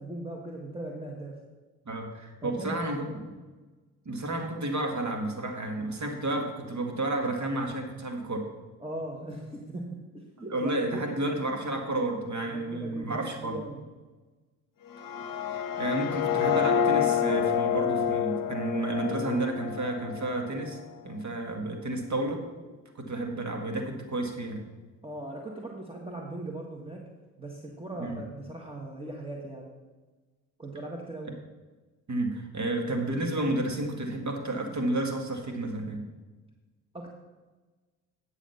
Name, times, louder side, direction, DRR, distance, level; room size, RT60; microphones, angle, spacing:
voice 1, 0.0-1.4 2.4-2.8 8.8-11.1 12.5-13.8 25.0-27.1 27.4-29.7 30.6-31.4 36.9-37.1, right 1 dB, 15° right, 0 dB, 1.6 m, -39 dB
voice 2, 1.9-3.1 4.1-8.5 10.5-13.6 15.3-20.8 21.0-22.4 23.0-24.6 28.0-28.2 32.1-36.0, right 2 dB, 40° right, 3 dB, 1.9 m, -31 dB
sound 1, 14.9-20.9, left 8 dB, 50° left, 1.0 m, -28 dB
9.9 x 6.6 x 5.7 m, 1.3 s
hypercardioid pair, 45°, 43 cm